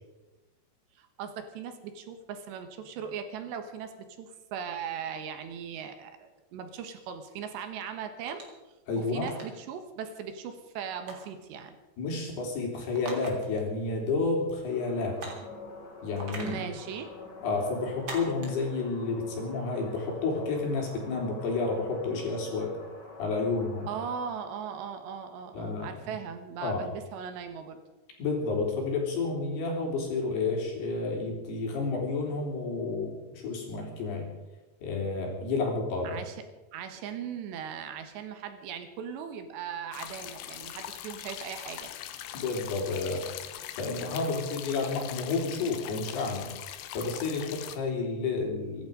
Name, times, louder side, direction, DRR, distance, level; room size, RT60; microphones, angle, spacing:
voice 1, 1.0-8.4 9.0-11.8 16.4-17.1 23.9-27.8 36.0-36.4 36.7-41.9, right 7 dB, 80° right, 7 dB, 3.6 m, -39 dB
sound 1, 8.3-8.6 9.2-9.5 11.1-11.4 12.9-13.6 13.9-14.0 15.2-15.5 16.2-16.6 18.1-18.6, right 3 dB, 30° right, 3.0 m, -40 dB
voice 2, 8.9-9.3 12.0-15.2 16.0-16.6 17.4-22.8 23.2-23.9 25.5-26.1 26.6-26.8 28.2-34.3 34.8-36.2 42.3-43.3 43.8-46.5 46.9-48.9, left 3 dB, 65° left, 0 dB, 5.4 m, -30 dB
sound 2, 14.7-24.5, left 3 dB, 25° left, 3.1 m, -46 dB
sound 3, 39.9-47.8, left 12 dB, 90° left, 3.3 m, -41 dB
24.5 x 11.5 x 5.2 m, 1.1 s
omnidirectional pair, 5.1 m